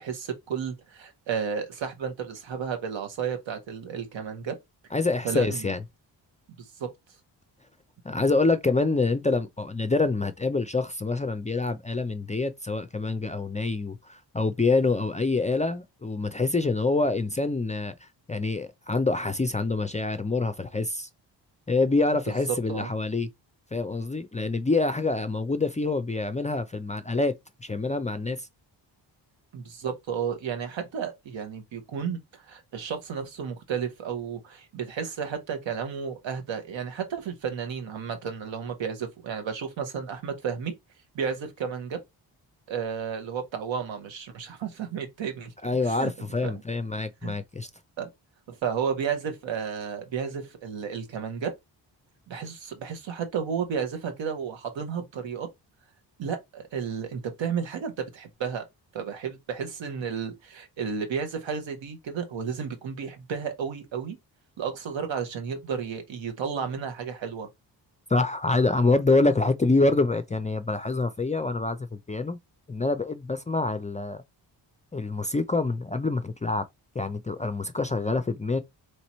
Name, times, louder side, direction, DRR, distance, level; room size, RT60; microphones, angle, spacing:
voice 1, 0.0-4.6 5.2-5.7 6.6-6.9 22.5-22.9 29.5-40.7 41.1-42.0 42.7-45.5 45.9-46.1 46.4-46.5 47.2-47.3 48.0-48.1 48.5-51.5 52.3-55.5 56.2-58.6 58.9-64.2 64.6-67.5, right 7 dB, 80° right, 1.2 m, -32 dB
voice 2, 4.9-5.8 8.0-21.1 21.7-23.3 23.7-27.3 27.6-28.5 45.6-47.7 68.1-72.4 72.7-74.2 74.9-76.6 76.9-78.6, left 3 dB, 20° left, 0.3 m, -26 dB
3.2 x 2.9 x 4.2 m
cardioid pair, 70°, 45 cm